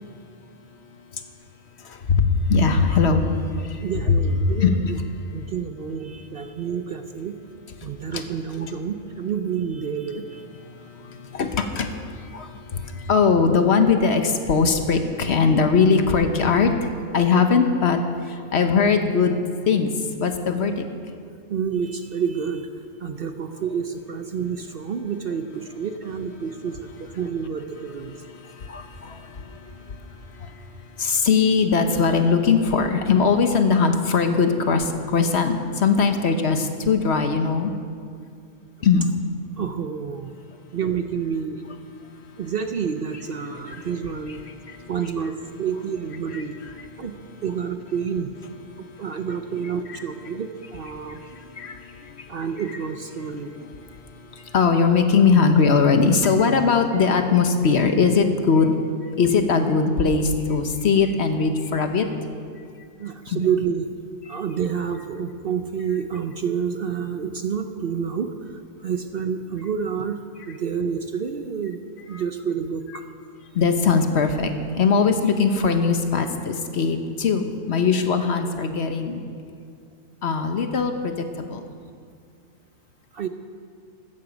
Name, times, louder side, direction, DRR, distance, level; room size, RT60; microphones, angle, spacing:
voice 1, 1.8-4.7 8.1-8.2 8.6-8.7 10.5-16.7 17.1-18.0 18.3-19.9 20.2-20.8 28.1-30.6 31.0-37.7 38.8-39.1 43.6-43.9 44.3-44.8 46.3-47.1 48.7-49.2 49.9-50.0 50.9-52.5 53.6-58.8 59.2-62.1 63.3-63.4 72.1-72.2 73.5-79.2 80.2-81.6, left 5 dB, 55° left, 6 dB, 1.1 m, -21 dB
voice 2, 3.8-5.0 5.3-7.4 7.8-10.4 21.5-22.7 23.0-28.1 39.6-40.3 40.7-41.6 42.4-44.4 44.9-46.5 47.0-47.2 47.4-48.3 49.0-51.2 52.3-53.5 63.0-63.9 64.3-68.3 68.8-73.0 83.1-83.3, right 7 dB, 55° right, 7 dB, 0.7 m, -29 dB
14.5 x 13.0 x 5.1 m, 2.3 s
omnidirectional pair, 1.4 m